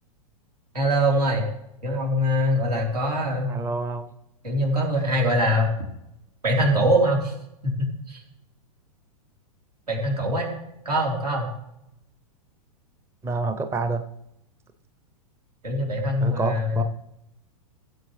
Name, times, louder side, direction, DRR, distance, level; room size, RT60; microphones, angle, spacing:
voice 1, 0.7-1.5 1.8-3.5 4.4-5.7 6.4-7.3 7.6-8.2 9.9-10.5 10.9-11.5 15.6-16.8, equal, 85° right, -1 dB, 3.7 m, -23 dB
voice 2, 3.5-4.1 13.2-14.0 16.2-16.8, right 3 dB, 15° right, 9 dB, 0.7 m, -27 dB
17.0 x 7.8 x 3.2 m, 0.82 s
figure-of-eight pair, 105°, 19 cm